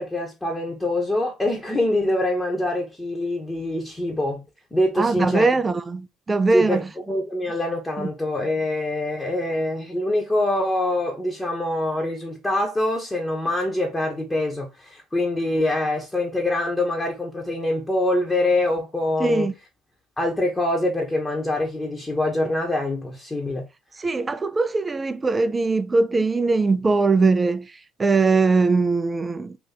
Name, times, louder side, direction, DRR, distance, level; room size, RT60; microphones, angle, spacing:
voice 1, 0.0-5.5 6.5-19.5 20.2-23.7, left 1 dB, 15° left, 1.1 m, -24 dB
voice 2, 5.0-6.8 8.0-8.1 19.2-19.5 24.0-27.7 28.0-29.6, right 3 dB, 25° right, 0.5 m, -21 dB
2.9 x 2.5 x 4.0 m
hypercardioid pair, 60°, 0 cm